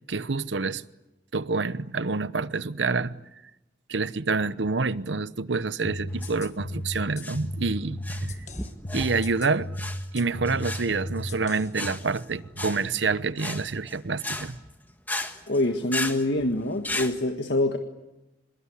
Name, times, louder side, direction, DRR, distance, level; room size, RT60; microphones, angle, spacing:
voice 1, 0.1-0.8 1.3-3.2 3.9-8.4 8.9-9.7 10.1-14.6, right 4 dB, 85° right, 0.9 m, -27 dB
sound 1, 5.8-11.9, left 1 dB, 40° left, 1.6 m, -35 dB
sound 2, 6.1-17.1, left 2 dB, 10° left, 1.5 m, -36 dB
voice 2, 15.5-17.8, left 1 dB, 70° left, 1.6 m, -25 dB
25.5 x 21.5 x 9.8 m
head